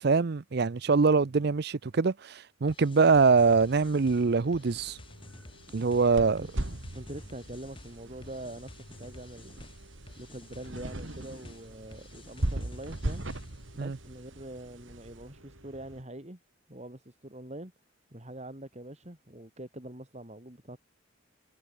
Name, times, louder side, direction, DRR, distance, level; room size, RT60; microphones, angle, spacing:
voice 1, 0.0-5.0 5.7-6.4 13.8-14.0, right 4 dB, 55° right, 0.5 m, -24 dB
sound 1, 2.7-13.7, left 2 dB, 25° left, 1.2 m, -51 dB
sound 2, 3.4-16.0, right 1 dB, 90° right, 5.5 m, -54 dB
sound 3, 5.8-15.2, right 1 dB, 75° right, 2.0 m, -38 dB
voice 2, 6.9-9.7 10.2-13.2 13.7-16.4 16.7-17.7 18.1-20.8, right 1 dB, 35° right, 2.9 m, -44 dB
head